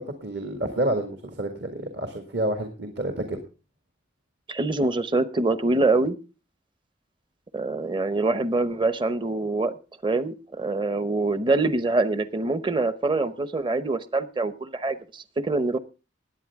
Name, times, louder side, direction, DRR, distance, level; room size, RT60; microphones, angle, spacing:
voice 1, 0.0-3.4, right 1 dB, 60° right, 5 dB, 1.8 m, -29 dB
voice 2, 4.5-6.2 7.5-9.8 10.0-15.8, right 2 dB, 25° right, 13 dB, 0.7 m, -25 dB
20.0 x 8.8 x 3.5 m, 0.32 s
head